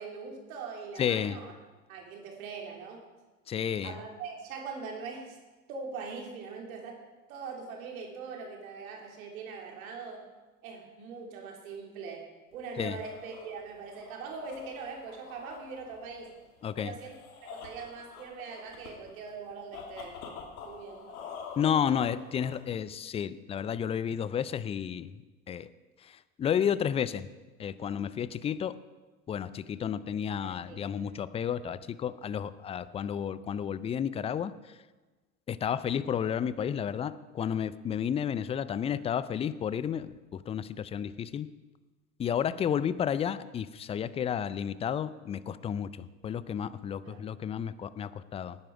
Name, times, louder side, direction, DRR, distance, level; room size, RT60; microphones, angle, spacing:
voice 1, 0.0-1.5 1.9-3.0 3.8-5.4 5.7-7.0 7.3-10.2 10.6-12.3 12.5-16.3 16.8-20.2 20.6-21.2 30.4-31.2 47.0-47.2, right 5 dB, 65° right, 1 dB, 3.3 m, -42 dB
voice 2, 1.0-1.4 3.5-3.9 12.8-13.0 16.6-16.9 21.6-25.1 25.5-25.7 26.4-27.3 27.6-28.7 29.3-34.5 35.5-41.5 42.2-48.6, left 8 dB, 15° left, 16 dB, 0.4 m, -31 dB
sound 1, 12.5-22.9, left 6 dB, 65° left, 2.7 m, -47 dB
19.0 x 9.7 x 4.9 m, 1.2 s
figure-of-eight pair, 80°, 45 cm